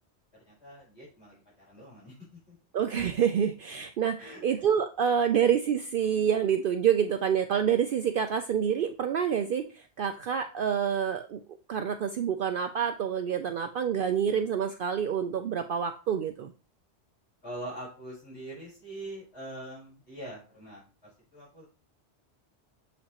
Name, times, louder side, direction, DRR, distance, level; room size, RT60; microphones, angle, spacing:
voice 1, 0.5-2.5 4.2-4.4 17.4-20.8 21.3-21.7, right 1 dB, 70° left, -7 dB, 4.4 m, -43 dB
voice 2, 2.7-11.4 11.7-16.5, right 8 dB, 60° right, 7 dB, 0.6 m, -27 dB
7.2 x 5.1 x 2.9 m, 0.34 s
omnidirectional pair, 1.2 m